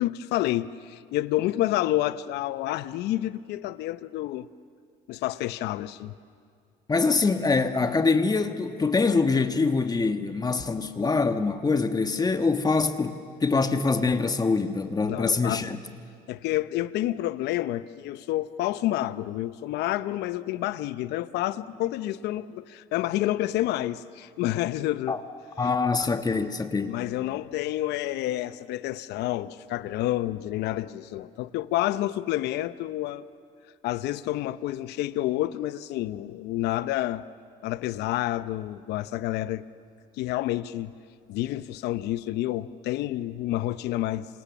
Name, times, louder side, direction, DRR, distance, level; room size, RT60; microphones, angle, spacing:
voice 1, 0.0-4.5 5.1-6.1 15.0-15.7 16.3-25.2 26.9-33.2 33.8-37.2 37.6-39.6 40.2-40.9 41.3-44.3, left 15 dB, 85° left, 0.8 m, -29 dB
voice 2, 6.9-15.8 25.1-25.2 25.6-27.0, left 4 dB, 25° left, 1.4 m, -24 dB
28.0 x 26.0 x 7.2 m
cardioid pair, 110°, 17 cm